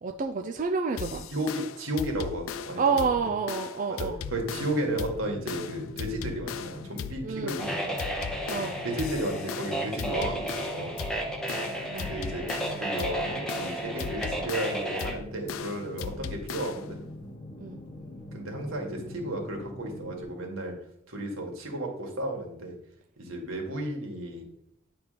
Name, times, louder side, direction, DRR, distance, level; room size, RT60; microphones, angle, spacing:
voice 1, 0.0-1.3 2.8-4.2 7.2-7.6 8.5-8.8 11.9-12.1 17.6-17.8, right 5 dB, 40° right, 5 dB, 0.4 m, -29 dB
sound 1, 1.0-16.9, left 7 dB, 80° left, 0.4 m, -38 dB
voice 2, 1.3-2.8 3.9-8.0 8.5-8.6 8.8-11.0 12.0-17.0 18.3-20.7 21.1-22.7 23.2-24.4, right 1 dB, 80° right, 1 dB, 1.8 m, -33 dB
sound 2, 4.2-20.2, left 1 dB, 30° left, 1.5 m, -43 dB
sound 3, 7.6-15.2, right 1 dB, 5° left, 0.8 m, -33 dB
8.9 x 3.4 x 5.0 m, 0.73 s
head